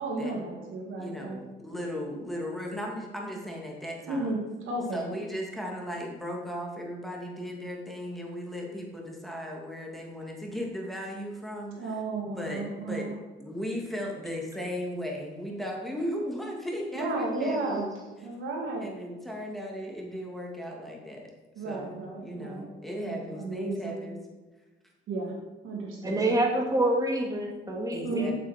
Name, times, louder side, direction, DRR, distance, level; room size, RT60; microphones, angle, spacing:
voice 1, 0.0-1.4 4.1-4.4 4.7-5.0 11.8-13.1 16.9-17.9 18.2-18.9 21.5-22.7 23.0-24.0 25.1-25.4 25.6-26.3 28.0-28.3, right 2 dB, 85° right, -1 dB, 2.6 m, -33 dB
voice 2, 1.0-4.3 4.9-11.9 12.2-13.1 13.4-18.2 18.8-21.3 21.6-24.2 26.2-26.3 27.9-28.3, equal, ahead, -1 dB, 2.3 m, -36 dB
voice 3, 26.0-28.3, right 1 dB, 20° right, -1 dB, 2.4 m, -27 dB
8.5 x 8.1 x 4.4 m, 1.2 s
cardioid pair, 90°, 20 cm